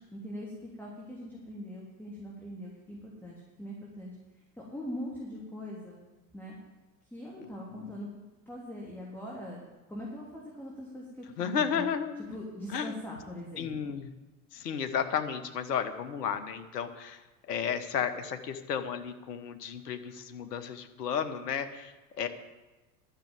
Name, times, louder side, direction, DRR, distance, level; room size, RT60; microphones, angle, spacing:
voice 1, 0.1-4.1 4.5-6.0 6.3-6.6 7.0-8.1 8.5-9.6 9.9-11.9 12.3-13.9, equal, 5° left, -4 dB, 3.3 m, -42 dB
voice 2, 11.4-12.2 12.7-12.9 13.6-14.1 14.5-17.2 17.5-22.3, left 7 dB, 70° left, 8 dB, 1.3 m, -33 dB
12.0 x 6.7 x 8.9 m, 1.1 s
figure-of-eight pair, 80°, 49 cm